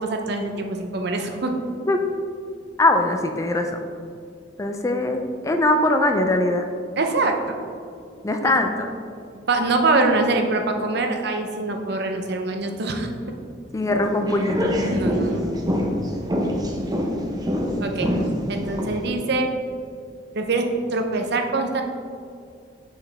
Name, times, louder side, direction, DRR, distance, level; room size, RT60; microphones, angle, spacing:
voice 1, 0.0-1.5 7.0-7.6 8.4-8.6 9.5-13.1 14.9-15.5 17.8-18.1 18.5-19.5 20.3-21.8, right 3 dB, 60° right, 4 dB, 0.7 m, -24 dB
voice 2, 2.8-3.7 4.6-6.7 8.2-8.9 13.7-14.7, left 2 dB, 15° left, 5 dB, 0.3 m, -21 dB
sound 1, 13.8-19.1, equal, 20° right, 0.6 m, -25 dB
6.8 x 5.5 x 3.5 m, 2.3 s
head